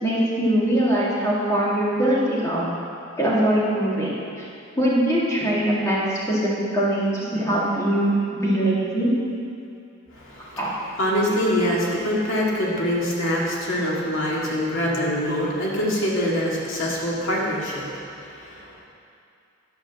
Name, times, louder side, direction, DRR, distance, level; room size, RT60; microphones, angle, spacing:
voice 1, 0.0-2.7 3.2-4.1 4.8-6.0 6.3-9.2 10.6-10.7, right 1 dB, 15° left, -7 dB, 2.3 m, -22 dB
voice 2, 10.1-10.6 11.0-18.9, equal, 70° left, -5 dB, 2.0 m, -24 dB
10.5 x 5.5 x 7.1 m, 2.5 s
head